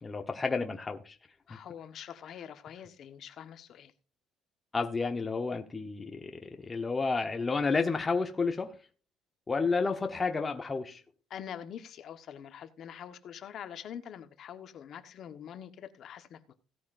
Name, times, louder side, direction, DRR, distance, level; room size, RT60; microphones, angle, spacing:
voice 1, 0.0-1.2 4.7-8.8 9.5-11.0, left 4 dB, 20° left, 1.0 m, -31 dB
voice 2, 1.5-3.9 11.3-16.6, left 9 dB, 50° left, 1.3 m, -45 dB
17.0 x 9.4 x 2.6 m
cardioid pair, 140°, 0 cm